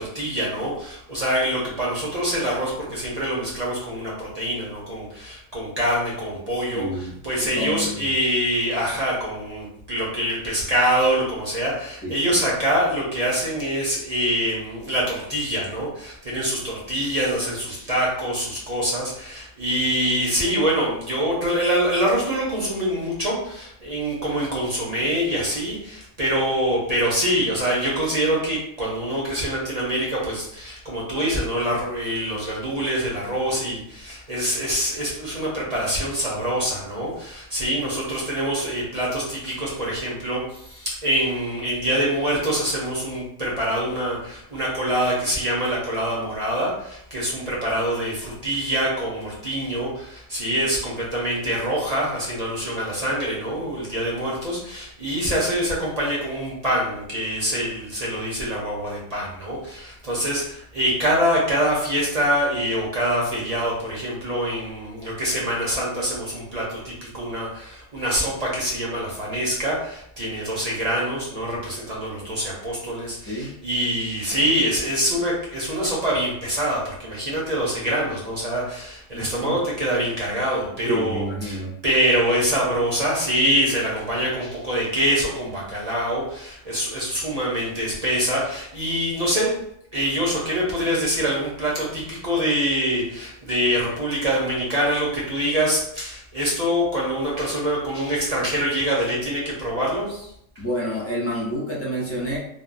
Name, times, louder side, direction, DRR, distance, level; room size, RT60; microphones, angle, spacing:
voice 1, 0.0-89.5 89.9-100.3, equal, 40° right, -5 dB, 0.7 m, -25 dB
voice 2, 6.7-7.2 7.4-8.1 12.0-12.2 73.3-73.5 79.1-79.6 80.8-81.7 100.6-102.4, equal, 20° left, -5 dB, 0.4 m, -28 dB
3.4 x 2.0 x 2.5 m, 0.72 s
omnidirectional pair, 1.4 m